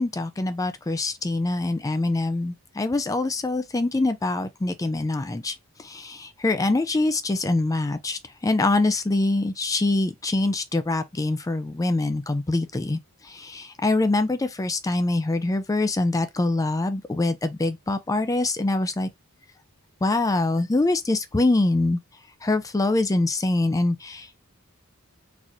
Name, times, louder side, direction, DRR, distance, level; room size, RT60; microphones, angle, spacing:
voice 1, 0.0-19.1 20.0-22.0 22.4-24.4, left 2 dB, 15° left, 0.4 m, -24 dB
4.0 x 3.0 x 2.4 m
head